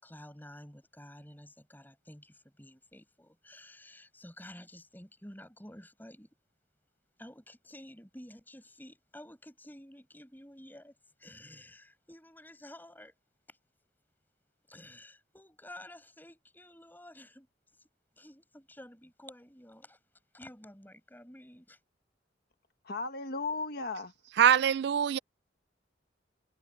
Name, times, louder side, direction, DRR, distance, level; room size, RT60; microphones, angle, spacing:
voice 1, 0.0-6.3 7.2-13.1 13.5-13.6 14.7-17.5 17.7-17.8 18.2-20.0 20.3-21.8, left 1 dB, 10° left, 6.9 m, -51 dB
voice 2, 22.8-24.1, left 3 dB, 55° left, 1.4 m, -35 dB
voice 3, 24.4-25.2, right 8 dB, 60° right, 0.3 m, -23 dB
head